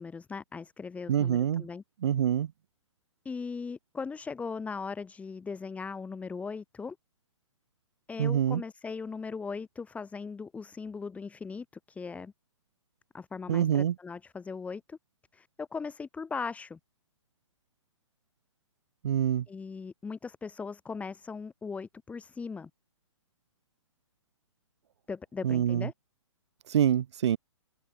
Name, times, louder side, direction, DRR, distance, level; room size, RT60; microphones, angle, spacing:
voice 1, 0.0-1.8 3.2-7.0 8.1-12.3 13.1-15.0 15.3-16.8 19.5-22.7 25.1-25.9, left 5 dB, 10° left, 1.1 m, -39 dB
voice 2, 1.1-1.7 2.0-2.5 8.2-8.6 13.5-13.9 19.0-19.4 25.4-25.9 26.7-27.4, right 9 dB, 60° right, 1.5 m, -26 dB
figure-of-eight pair, 125°, 16 cm